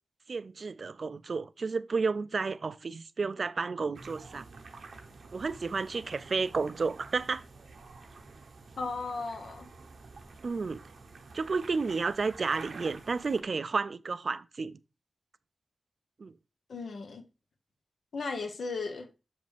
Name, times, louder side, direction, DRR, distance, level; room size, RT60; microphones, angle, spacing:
voice 1, 0.3-4.5 5.3-7.4 10.4-10.8 11.3-14.8 16.2-16.3, right 4 dB, 55° right, 0.3 m, -31 dB
sound 1, 3.9-13.4, right 3 dB, 90° right, 0.9 m, -49 dB
voice 2, 8.8-9.7 16.7-17.2 18.1-19.1, left 4 dB, 90° left, 1.0 m, -36 dB
6.7 x 5.2 x 3.3 m
wide cardioid pair, 130°, 0 cm